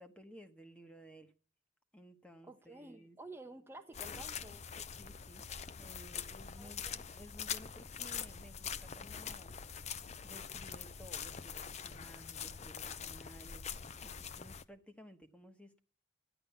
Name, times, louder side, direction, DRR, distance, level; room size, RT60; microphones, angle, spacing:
voice 1, 0.0-1.3 1.9-3.2 4.8-5.5 5.8-9.5 10.2-15.8, equal, 5° left, 1.1 m, -56 dB
voice 2, 2.4-4.6 6.6-7.0, right 2 dB, 10° right, 0.8 m, -52 dB
sound 1, 3.9-14.6, left 7 dB, 35° left, 0.6 m, -44 dB
13.5 x 10.5 x 6.9 m
head